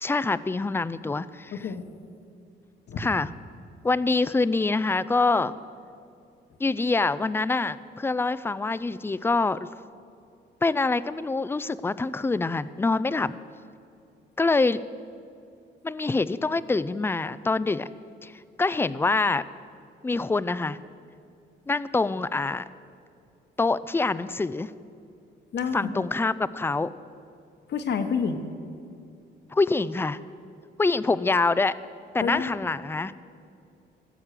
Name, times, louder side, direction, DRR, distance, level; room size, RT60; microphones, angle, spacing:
voice 1, 0.0-1.7 3.0-3.3 3.8-5.5 6.6-9.7 10.6-13.3 14.4-14.8 15.8-17.9 18.2-18.3 18.6-19.4 20.0-20.8 21.7-22.6 23.6-24.7 25.7-26.9 29.5-30.2 30.8-31.7 32.1-33.1, left 3 dB, 10° left, 17 dB, 0.4 m, -25 dB
voice 2, 1.5-1.9 2.9-3.0 25.5-26.1 27.7-28.4 32.2-32.5, left 6 dB, 60° left, 8 dB, 1.1 m, -28 dB
16.0 x 7.3 x 6.7 m, 2.5 s
cardioid pair, 90°, 20 cm